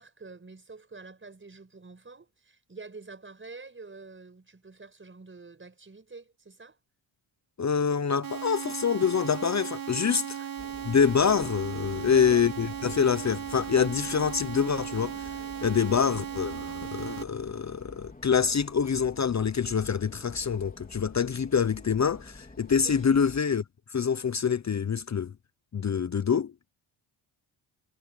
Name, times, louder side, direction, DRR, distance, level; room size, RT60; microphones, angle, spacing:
voice 1, 0.0-6.8 10.4-10.5 12.1-12.5 22.8-23.0, right 3 dB, 25° right, 5.7 m, -47 dB
voice 2, 7.6-10.4 10.8-15.3 15.6-23.6 23.9-25.3 25.7-26.5, left 6 dB, 35° left, 1.0 m, -26 dB
sound 1, 8.2-17.2, right 9 dB, 45° right, 2.2 m, -37 dB
sound 2, 10.6-23.4, left 2 dB, 20° left, 4.0 m, -49 dB
cardioid pair, 80°, 45 cm